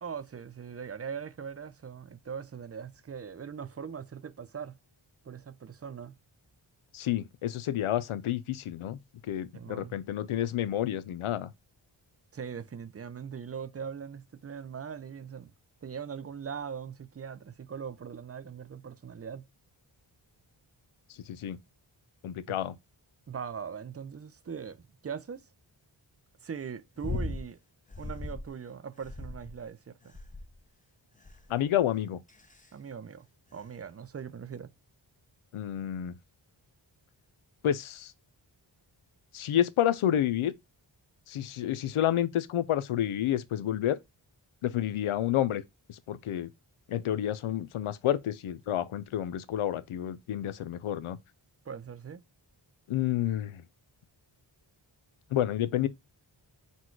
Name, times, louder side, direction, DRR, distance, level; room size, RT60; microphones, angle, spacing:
voice 1, 0.0-4.8 5.2-6.2 9.5-10.0 12.3-15.5 15.8-19.5 22.5-22.6 23.3-25.5 26.4-27.6 28.0-30.1 32.7-34.7 51.7-52.2, right 7 dB, 30° right, 0.5 m, -41 dB
voice 2, 6.9-9.0 9.3-11.5 21.3-21.6 22.2-22.8 31.5-32.2 35.5-36.1 37.6-38.1 39.3-40.5 41.3-44.0 44.6-45.6 45.9-46.5 46.9-51.2 52.9-53.6 55.3-55.9, left 11 dB, 85° left, 0.5 m, -29 dB
sound 1, 27.0-27.5 27.9-28.5 29.0-29.6 30.1-30.6 31.2-31.6 32.3-32.7 33.6-33.7, left 2 dB, 15° left, 0.7 m, -37 dB
4.2 x 2.2 x 4.4 m
cardioid pair, 45°, 48 cm